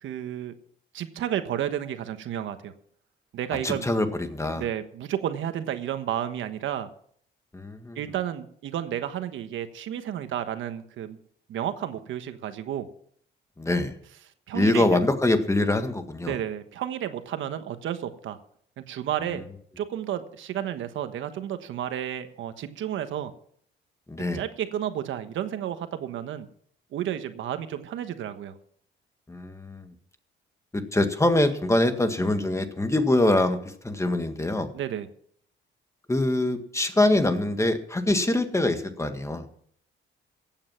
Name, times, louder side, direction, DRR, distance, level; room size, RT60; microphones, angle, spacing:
voice 1, 0.0-0.5 0.9-2.7 3.3-3.9 4.5-6.9 8.0-11.2 11.5-12.9 14.5-15.0 16.2-18.4 18.9-19.4 19.8-23.3 24.3-26.5 26.9-28.5 34.7-35.1, right 10 dB, 80° right, 9 dB, 1.3 m, -31 dB
voice 2, 3.6-4.6 7.5-8.0 13.6-13.9 14.5-16.4 24.1-24.4 29.3-29.9 30.7-33.6 33.8-34.7 36.1-39.5, left 2 dB, 15° left, 8 dB, 1.7 m, -24 dB
15.5 x 8.9 x 5.9 m, 0.62 s
cardioid pair, 90°, 20 cm